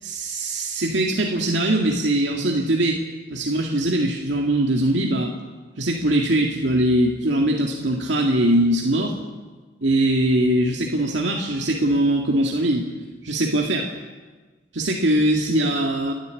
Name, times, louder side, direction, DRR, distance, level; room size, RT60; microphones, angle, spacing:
voice 1, 0.0-3.0 3.3-5.3 5.8-9.1 9.8-12.9 13.2-13.9 14.7-16.1, right 1 dB, 80° right, 0 dB, 2.1 m, -21 dB
29.5 x 11.5 x 8.4 m, 1.4 s
head